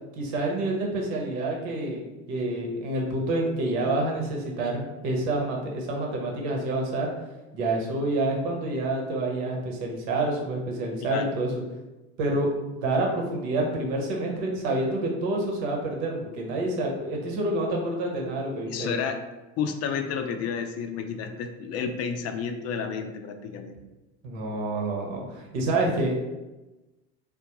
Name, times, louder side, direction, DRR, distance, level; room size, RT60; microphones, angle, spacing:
voice 1, 0.2-2.0 2.3-7.1 7.5-11.5 12.2-18.9 24.2-26.2, right 2 dB, 70° right, 0 dB, 1.0 m, -28 dB
voice 2, 18.7-19.2 19.6-23.8, left 6 dB, 45° left, 7 dB, 0.5 m, -31 dB
3.6 x 2.3 x 2.9 m, 1.1 s
hypercardioid pair, 85°, 35 cm